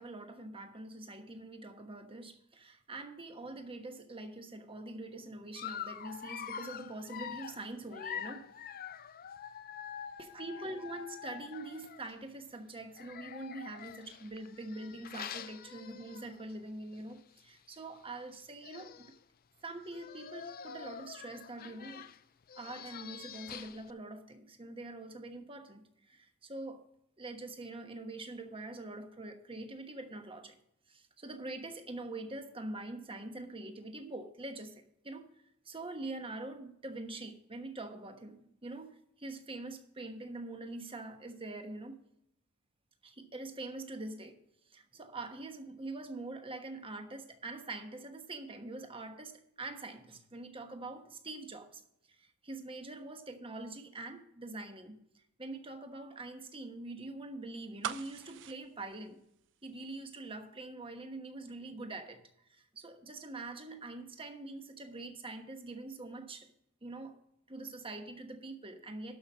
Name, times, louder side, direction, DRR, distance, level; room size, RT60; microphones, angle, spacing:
voice 1, 0.0-8.5 10.2-19.2 19.6-22.1 22.5-26.8 27.2-30.6 30.9-35.3 35.6-42.0 43.0-44.4 44.7-51.8 52.1-59.2 59.6-62.2 62.5-66.5 66.8-67.2 67.5-69.2, right 2 dB, 25° right, 6 dB, 1.2 m, -44 dB
Dog, 5.5-12.1 12.9-16.5 16.9-17.1 17.4-17.5 18.3-18.4 18.6-19.2 19.8-23.9, left 8 dB, 45° left, 0.5 m, -45 dB
sound 1, 57.8-59.9 60.2-60.3, right 9 dB, 60° right, 0.5 m, -41 dB
12.0 x 5.8 x 6.3 m, 0.74 s
head